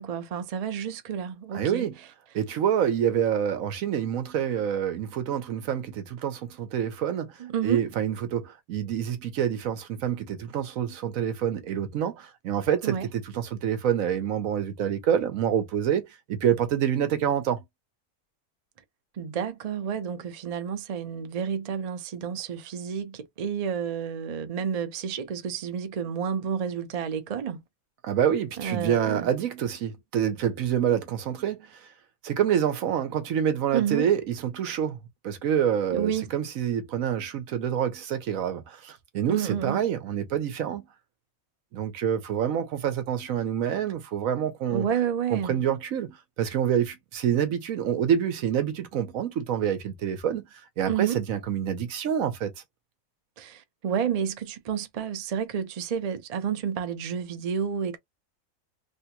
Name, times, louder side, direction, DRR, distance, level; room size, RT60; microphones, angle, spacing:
voice 1, 0.0-1.9 7.4-7.8 12.8-13.1 19.2-27.6 28.6-29.3 33.7-34.1 35.9-36.3 39.3-39.8 44.7-45.6 50.9-51.2 53.4-58.0, right 8 dB, 55° right, 0.4 m, -30 dB
voice 2, 1.5-2.0 2.3-7.3 7.6-17.6 28.0-31.8 32.2-35.0 35.2-40.9 41.7-44.9 45.3-52.5, right 9 dB, 75° right, 1.1 m, -27 dB
3.3 x 2.9 x 2.2 m
omnidirectional pair, 1.5 m